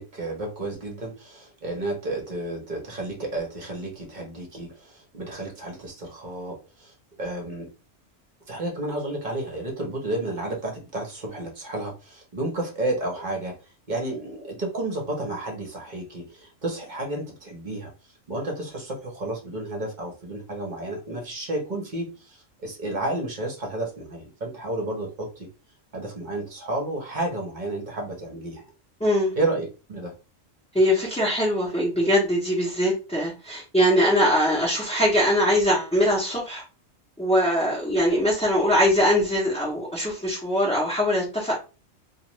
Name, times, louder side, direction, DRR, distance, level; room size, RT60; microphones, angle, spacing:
voice 1, 0.0-7.7 8.5-13.5 13.9-17.9 18.3-25.5 25.9-28.6 29.4-30.1, right 2 dB, 40° right, 1 dB, 0.9 m, -31 dB
voice 2, 29.0-29.3 30.7-36.6 37.2-41.5, equal, 5° left, -8 dB, 0.7 m, -22 dB
2.5 x 2.4 x 3.0 m, 0.31 s
omnidirectional pair, 1.3 m